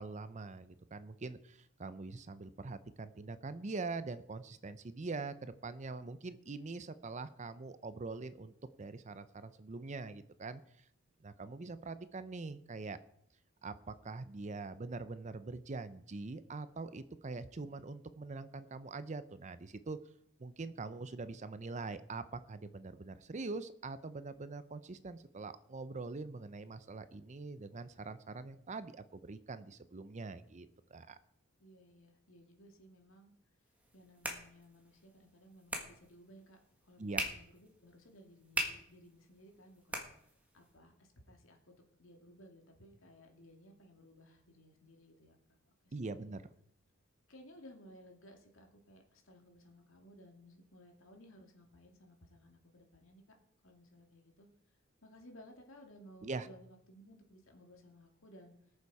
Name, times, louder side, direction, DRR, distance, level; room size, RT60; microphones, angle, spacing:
voice 1, 0.0-10.8 11.2-13.0 13.6-20.0 20.4-31.2 37.0-37.3 45.9-46.4 56.2-56.5, right 3 dB, 35° right, 13 dB, 0.6 m, -43 dB
voice 2, 31.6-33.3 33.9-36.6 36.8-40.3 40.5-45.4 45.6-46.3 47.3-53.2 53.6-54.5 55.0-58.5, equal, 65° left, 3 dB, 2.3 m, -59 dB
sound 1, 33.7-40.7, equal, 5° right, 1.7 m, -43 dB
19.0 x 6.9 x 4.8 m, 0.71 s
head